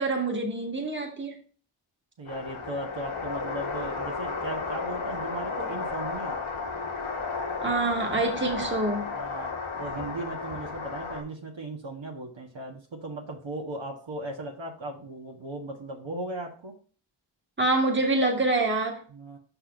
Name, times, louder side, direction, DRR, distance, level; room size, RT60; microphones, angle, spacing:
voice 1, 0.0-1.4 7.6-9.1 17.6-19.0, right 2 dB, 25° right, 1.7 m, -26 dB
voice 2, 2.2-6.4 8.4-8.5 9.1-9.5 9.8-16.7 19.1-19.4, right 2 dB, 65° right, 1.5 m, -37 dB
sound 1, 2.3-11.2, left 4 dB, 80° left, 1.5 m, -33 dB
5.8 x 4.4 x 5.2 m
cardioid pair, 40°, 48 cm